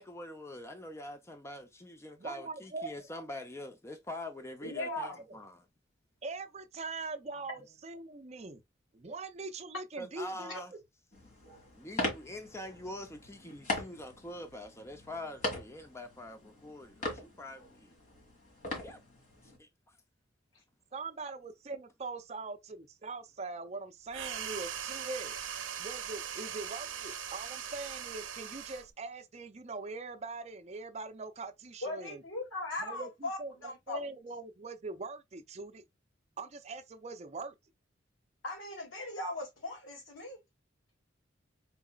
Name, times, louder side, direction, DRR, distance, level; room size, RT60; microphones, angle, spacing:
voice 1, 0.0-5.7 10.0-10.7 11.8-17.9 18.8-19.0 19.4-20.0, left 1 dB, 15° left, 0.5 m, -45 dB
voice 2, 2.2-2.9 4.8-5.4 6.2-8.6 8.9-10.8 20.9-25.4 25.8-32.2 32.8-35.8 36.4-37.5, right 3 dB, 35° right, 0.5 m, -42 dB
voice 3, 4.6-5.2 10.5-10.6 31.8-34.1 38.4-40.4, left 2 dB, 80° left, 2.1 m, -39 dB
sound 1, 11.1-19.6, left 1 dB, 40° left, 1.9 m, -40 dB
sound 2, 24.1-28.9, right 9 dB, 75° right, 0.7 m, -40 dB
4.6 x 4.0 x 2.3 m
head